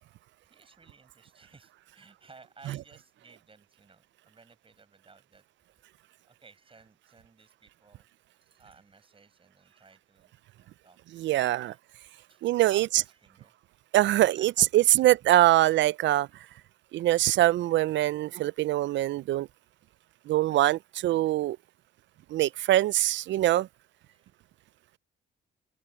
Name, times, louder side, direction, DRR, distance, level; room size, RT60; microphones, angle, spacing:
voice 1, 0.5-5.4 6.2-8.1 8.4-11.4 11.6-11.8 12.3-12.4 12.7-13.5 14.2-14.9 15.5-15.8 16.4-16.5 19.3-19.5 22.4-22.6 24.1-24.3, right 4 dB, 25° right, 7.3 m, -57 dB
voice 2, 11.1-11.7 12.4-13.0 13.9-16.3 16.9-19.5 20.3-21.6 22.3-23.7, right 15 dB, 70° right, 0.4 m, -23 dB
cardioid pair, 90°, 20 cm